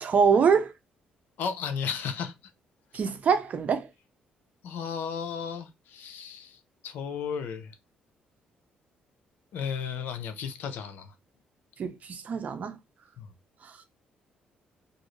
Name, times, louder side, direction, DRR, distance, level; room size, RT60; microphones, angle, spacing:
voice 1, 0.0-0.7 2.9-3.9 11.8-12.8, right 6 dB, 50° right, 0.6 m, -24 dB
voice 2, 1.4-2.3 4.6-6.6 6.8-7.7 9.5-11.1 13.2-13.3, left 6 dB, 80° left, 0.5 m, -34 dB
2.6 x 2.4 x 3.0 m
cardioid pair, 90°, 3 cm